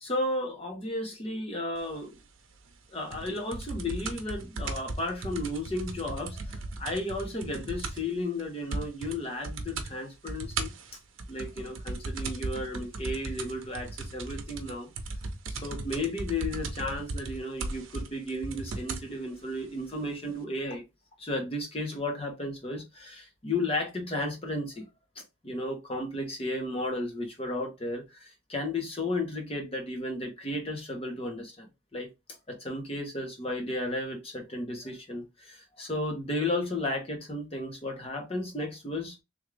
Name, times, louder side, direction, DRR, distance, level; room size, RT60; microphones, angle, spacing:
voice 1, 0.0-2.2 2.9-10.7 11.3-14.9 15.5-20.8 21.2-24.8 25.4-31.7 31.9-32.1 32.5-39.2, left 1 dB, 30° left, 1.0 m, -34 dB
sound 1, 3.1-8.1 8.4-8.5 8.7-9.2 9.4-9.9 10.3-19.1 19.9-20.0, right 3 dB, 80° right, 0.7 m, -36 dB
3.6 x 2.6 x 3.3 m
head